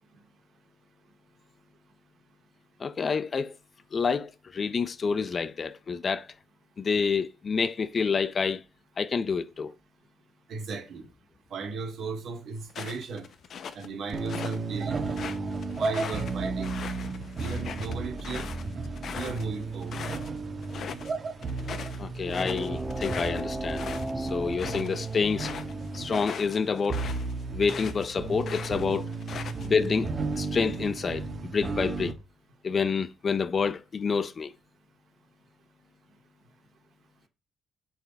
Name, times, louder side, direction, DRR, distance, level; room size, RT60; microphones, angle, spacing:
voice 1, 2.8-3.5 3.9-6.3 6.8-8.6 9.0-9.7 22.0-23.8 24.2-25.5 25.9-27.0 27.5-29.1 29.6-30.1 30.4-32.1 32.6-34.5, left 5 dB, 40° left, 0.6 m, -28 dB
voice 2, 10.5-11.1 11.5-13.3 13.7-15.0 15.7-16.8 17.4-18.5 19.1-20.1 23.1-23.2, right 4 dB, 65° right, 2.3 m, -36 dB
sound 1, 12.7-14.6 15.0-20.3 20.6-21.1 21.4-28.1 28.4-29.9, left 7 dB, 60° left, 0.9 m, -40 dB
sound 2, 14.1-32.1, right 3 dB, 40° right, 1.4 m, -34 dB
sound 3, 22.2-27.3, right 1 dB, 10° right, 1.3 m, -37 dB
7.5 x 5.0 x 5.3 m
cardioid pair, 90°, 0 cm